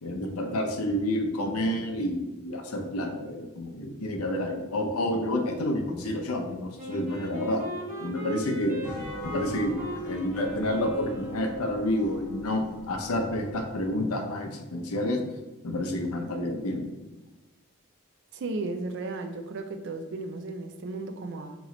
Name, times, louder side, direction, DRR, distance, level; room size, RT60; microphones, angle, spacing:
voice 1, 0.0-7.6 8.0-8.9 9.2-9.8 10.0-15.2 15.6-16.9, left 1 dB, 85° left, 4 dB, 0.6 m, -29 dB
Wind instrument woodwind instrument, 6.8-11.9, right 1 dB, 35° right, 1.2 m, -38 dB
sound 1, 8.8-14.0, equal, 5° right, 0.6 m, -43 dB
voice 2, 18.3-21.6, right 3 dB, 55° right, 6 dB, 0.4 m, -35 dB
3.1 x 3.0 x 3.7 m, 1.1 s
head